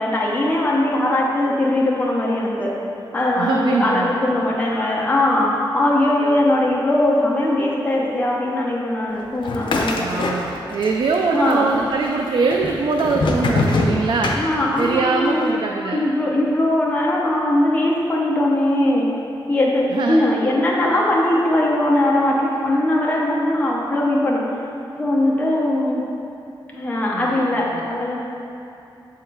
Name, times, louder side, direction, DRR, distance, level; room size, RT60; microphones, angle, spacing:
voice 1, 0.0-2.7 3.1-10.1 11.3-11.8 14.4-19.1 19.5-24.4 25.0-26.0 26.7-28.2, left 1 dB, 20° left, -4 dB, 0.7 m, -20 dB
voice 2, 3.4-4.2 9.9-14.4 14.8-16.0 19.9-20.2 27.1-27.8, right 4 dB, 65° right, 2 dB, 0.4 m, -22 dB
sound 1, 9.4-10.9 11.1-11.9 12.5-15.0, left 3 dB, 75° left, 0.6 m, -23 dB
7.2 x 3.7 x 4.6 m, 2.7 s
wide cardioid pair, 140°, 8 cm